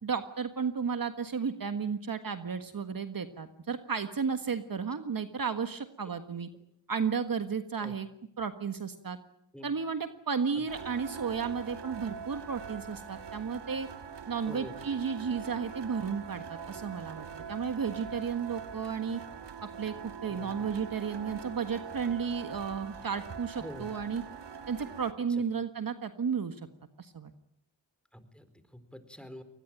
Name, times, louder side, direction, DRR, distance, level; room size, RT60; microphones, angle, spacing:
voice 1, 0.0-6.5 6.9-8.1 8.4-9.2 9.6-13.9 14.3-19.2 19.6-24.2 24.7-26.6 27.0-27.3, right 6 dB, 50° right, 9 dB, 1.6 m, -33 dB
sound 1, 10.7-25.1, right 7 dB, 65° right, 2.1 m, -43 dB
voice 2, 20.2-20.6 23.6-23.9 25.3-25.4 28.1-29.4, equal, ahead, 11 dB, 4.3 m, -46 dB
23.5 x 20.0 x 8.9 m, 0.74 s
cardioid pair, 60°, 45 cm